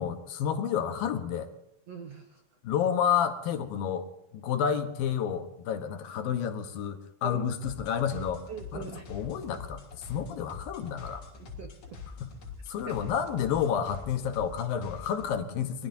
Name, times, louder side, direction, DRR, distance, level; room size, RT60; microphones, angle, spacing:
voice 1, 0.0-1.5 2.6-8.4 8.7-11.3 12.2-12.3 12.7-15.9, left 8 dB, 70° left, 7 dB, 2.8 m, -30 dB
voice 2, 1.9-2.4 7.2-7.5 8.5-9.1 11.4-12.0 12.8-13.1, right 6 dB, 80° right, 6 dB, 1.4 m, -42 dB
sound 1, 7.6-15.3, left 5 dB, 45° left, 4.3 m, -45 dB
25.0 x 20.5 x 2.8 m, 0.88 s
omnidirectional pair, 4.7 m